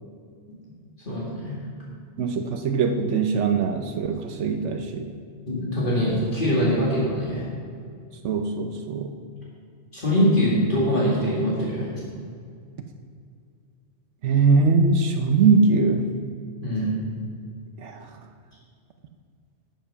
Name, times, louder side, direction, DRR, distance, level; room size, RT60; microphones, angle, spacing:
voice 1, 1.1-1.6 5.5-7.4 9.9-11.9 16.6-16.9, equal, 45° left, -7 dB, 2.4 m, -23 dB
voice 2, 2.2-5.2 8.2-9.2 14.2-16.1 17.8-18.1, right 4 dB, 85° right, 6 dB, 1.1 m, -22 dB
12.5 x 7.4 x 5.7 m, 2.3 s
omnidirectional pair, 1.2 m